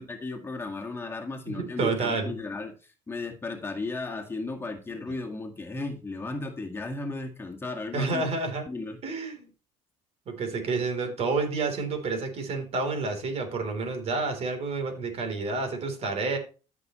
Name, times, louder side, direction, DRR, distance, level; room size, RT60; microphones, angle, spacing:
voice 1, 0.0-8.3 8.7-9.0, left 3 dB, 15° left, 1 dB, 1.9 m, -35 dB
voice 2, 1.5-2.3 7.9-8.7 9.0-9.5 10.3-16.4, right 3 dB, 50° right, 5 dB, 3.6 m, -29 dB
14.0 x 6.1 x 3.2 m, 0.34 s
supercardioid pair, 100°, 14 cm